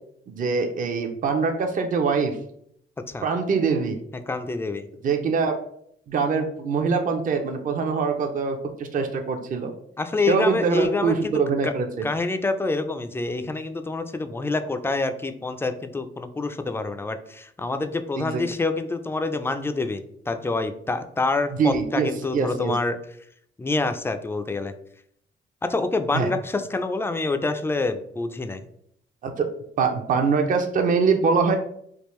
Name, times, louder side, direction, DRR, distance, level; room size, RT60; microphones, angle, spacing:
voice 1, 0.3-2.4 3.2-4.0 5.0-5.6 6.1-9.7 10.3-12.1 18.2-18.4 21.6-22.7 26.1-26.3 29.2-29.5 29.8-31.6, right 5 dB, 40° right, 5 dB, 0.5 m, -23 dB
voice 2, 4.3-4.9 10.0-11.7 12.0-23.0 23.6-24.7 25.6-28.6, left 3 dB, 10° left, 8 dB, 0.3 m, -27 dB
3.5 x 2.4 x 3.0 m, 0.70 s
cardioid pair, 90°, 20 cm